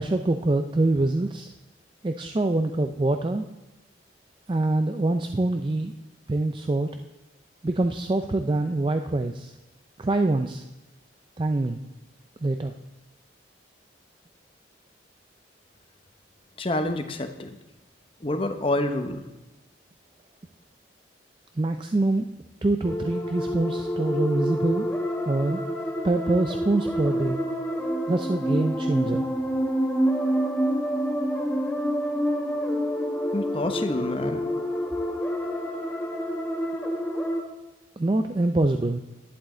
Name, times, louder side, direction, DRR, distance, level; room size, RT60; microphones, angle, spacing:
voice 1, 0.0-1.5 2.0-3.5 4.5-5.9 6.3-6.9 7.6-9.5 10.0-10.6 11.4-11.8 12.4-12.7 21.6-22.3 22.6-24.9 25.3-25.6 26.0-27.4 28.1-29.3 38.0-39.0, right 2 dB, 25° right, 6 dB, 0.4 m, -25 dB
voice 2, 16.6-17.5 18.2-19.2 33.3-34.5, left 1 dB, 30° left, 7 dB, 0.8 m, -27 dB
sound 1, 22.8-37.4, equal, 10° left, 1.4 m, -28 dB
11.0 x 10.5 x 3.8 m, 1.1 s
head